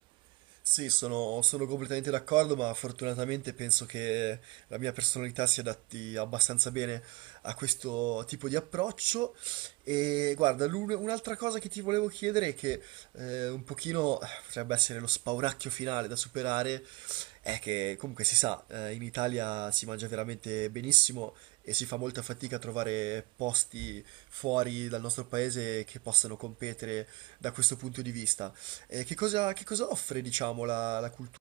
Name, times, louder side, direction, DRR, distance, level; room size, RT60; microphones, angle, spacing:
voice 1, 0.7-21.3 21.6-31.4, right 21 dB, 50° right, 0.5 m, -32 dB
figure-of-eight pair, 65°, 10 cm